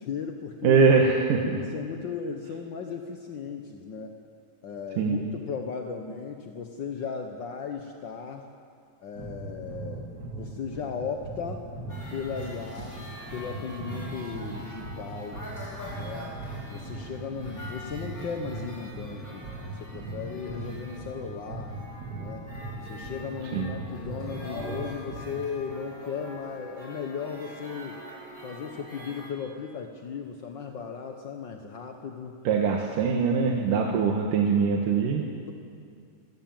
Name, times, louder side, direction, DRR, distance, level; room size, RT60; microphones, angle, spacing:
voice 1, 0.0-0.8 1.4-4.2 4.6-8.5 9.0-10.1 10.4-11.6 12.1-13.0 13.3-15.4 15.9-16.4 16.7-21.7 22.2-22.5 22.8-28.0 28.4-32.3 35.2-35.5, left 6 dB, 60° left, 4 dB, 1.2 m, -36 dB
voice 2, 0.6-1.6 5.0-5.2 23.5-23.7 32.4-35.3, right 5 dB, 90° right, 1 dB, 3.1 m, -22 dB
sound 1, 9.2-25.6, right 2 dB, 35° right, 2.3 m, -40 dB
sound 2, 11.9-29.3, left 1 dB, 25° left, 5.7 m, -44 dB
27.0 x 15.0 x 9.0 m, 2.3 s
omnidirectional pair, 3.7 m